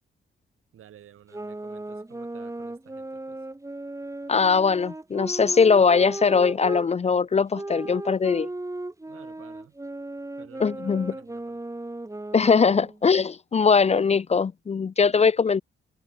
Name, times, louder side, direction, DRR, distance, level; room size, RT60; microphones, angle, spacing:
voice 1, 0.7-3.5 9.1-9.8 10.4-11.6, right 10 dB, 85° right, 6.8 m, -52 dB
sound 1, 1.3-6.9 7.5-13.0, right 2 dB, 15° right, 2.2 m, -36 dB
voice 2, 4.3-8.5 10.6-11.1 12.3-15.6, left 5 dB, 30° left, 0.4 m, -21 dB
cardioid pair, 75°, 21 cm